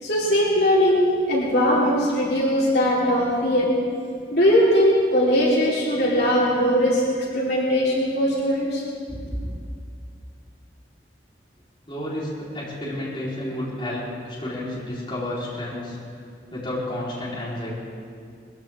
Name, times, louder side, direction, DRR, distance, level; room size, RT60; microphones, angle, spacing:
voice 1, 0.0-3.7 4.3-7.0 7.3-8.8, equal, 65° left, -6 dB, 3.7 m, -20 dB
voice 2, 11.9-16.0 16.5-17.7, left 1 dB, 30° left, -8 dB, 4.1 m, -31 dB
21.5 x 15.5 x 3.7 m, 2.2 s
head